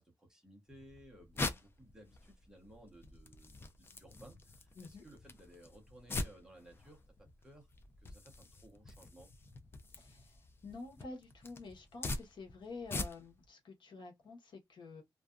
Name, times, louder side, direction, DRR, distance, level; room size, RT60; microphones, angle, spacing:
voice 1, 0.0-7.7 8.0-9.3, right 1 dB, 5° right, 0.7 m, -58 dB
sound 1, 0.7-13.5, left 2 dB, 25° left, 0.3 m, -44 dB
voice 2, 4.8-5.1 9.9-15.0, left 3 dB, 65° left, 1.0 m, -49 dB
2.5 x 2.3 x 2.3 m
wide cardioid pair, 175°, 9 cm